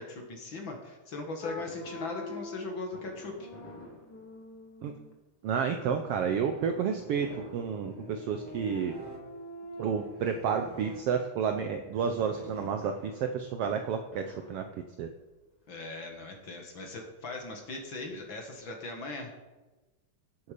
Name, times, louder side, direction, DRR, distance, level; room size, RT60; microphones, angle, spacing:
voice 1, 0.0-3.5 15.7-19.3, left 3 dB, 45° left, 2 dB, 2.1 m, -39 dB
sound 1, 1.4-2.8 3.4-5.1 7.2-10.6, left 3 dB, 70° left, 1.0 m, -45 dB
Fireworks, 1.6-4.8 5.5-8.5 8.7-9.3 10.3-11.4 12.5-15.2 16.0-16.1 16.3-16.4 16.8-18.0 18.3-18.4 18.6-18.7, left 1 dB, 5° left, 4.0 m, -52 dB
voice 2, 5.4-8.9 9.8-14.7 15.0-15.1, right 7 dB, 75° right, 6 dB, 1.4 m, -31 dB
sound 2, 5.8-13.2, right 2 dB, 15° right, 1.0 m, -48 dB
16.5 x 8.4 x 5.1 m, 1.1 s
omnidirectional pair, 3.4 m